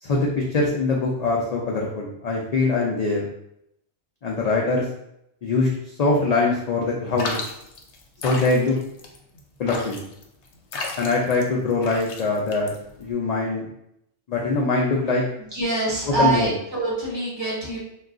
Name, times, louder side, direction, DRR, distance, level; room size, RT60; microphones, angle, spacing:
voice 1, 0.0-3.3 4.2-4.9 5.4-7.4 8.2-8.8 9.6-10.0 11.0-12.7 13.0-13.7 14.3-15.3 16.2-16.5, left 3 dB, 60° left, -3 dB, 0.4 m, -23 dB
sound 1, 7.2-13.1, left 3 dB, 75° left, 0.9 m, -34 dB
voice 2, 15.4-17.8, right 3 dB, 25° right, -6 dB, 0.9 m, -25 dB
2.3 x 2.2 x 3.6 m, 0.78 s
omnidirectional pair, 1.2 m